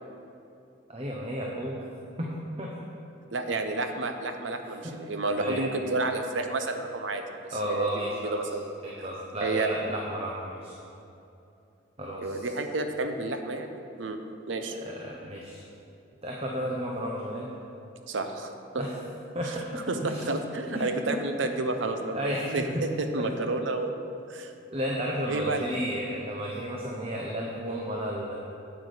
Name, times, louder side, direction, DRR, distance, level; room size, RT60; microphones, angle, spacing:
voice 1, 0.9-1.8 2.2-2.3 2.6-2.7 4.8-4.9 5.4-5.6 7.5-8.4 8.8-10.8 12.0-12.5 14.8-15.6 16.2-17.5 18.8-18.9 19.3-20.2 20.7-21.2 22.1-22.4 22.7-22.8 24.7-28.3, equal, 30° right, -2 dB, 0.8 m, -33 dB
voice 2, 3.3-7.9 8.3-8.6 9.4-9.7 12.2-14.2 14.5-14.8 18.1-18.8 19.4-19.6 19.9-24.0 24.3-24.5 25.3-25.6, right 2 dB, 85° right, 6 dB, 0.8 m, -30 dB
8.2 x 8.1 x 5.0 m, 2.7 s
head